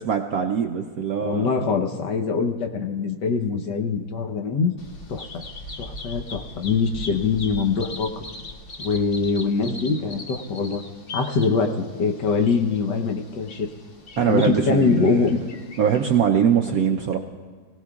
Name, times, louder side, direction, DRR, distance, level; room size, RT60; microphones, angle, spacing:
voice 1, 0.0-1.6 14.2-15.3 15.8-17.2, right 8 dB, 70° right, 4 dB, 0.8 m, -22 dB
voice 2, 1.2-4.7 5.1-5.4 5.8-8.3 8.8-10.8 11.1-13.7 14.3-15.4, left 5 dB, 65° left, 4 dB, 1.5 m, -23 dB
Bird vocalization bird call bird song, 4.8-16.2, left 2 dB, 40° left, 0.8 m, -40 dB
26.0 x 17.5 x 2.3 m, 1.5 s
omnidirectional pair, 2.2 m